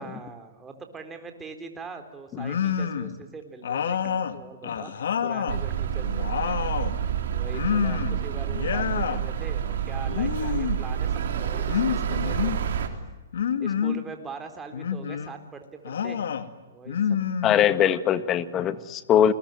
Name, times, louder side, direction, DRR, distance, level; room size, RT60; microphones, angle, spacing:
voice 1, 0.0-7.0 7.3-12.6 13.6-16.3 16.7-17.0 18.6-18.9, right 4 dB, 15° right, 6 dB, 3.8 m, -42 dB
sound 1, 2.4-3.2 3.6-5.6 6.0-7.0 7.5-8.2 8.5-9.2 10.1-10.8 11.7-12.6 13.3-14.1 14.7-15.3 15.8-16.5 16.9-18.0, left 7 dB, 75° left, 2.1 m, -28 dB
sound 2, 5.5-12.9, right 9 dB, 65° right, 3.6 m, -28 dB
voice 2, 17.4-19.3, left 10 dB, 25° left, 13 dB, 1.6 m, -21 dB
29.0 x 21.5 x 9.3 m, 1.1 s
hypercardioid pair, 140°, 0 cm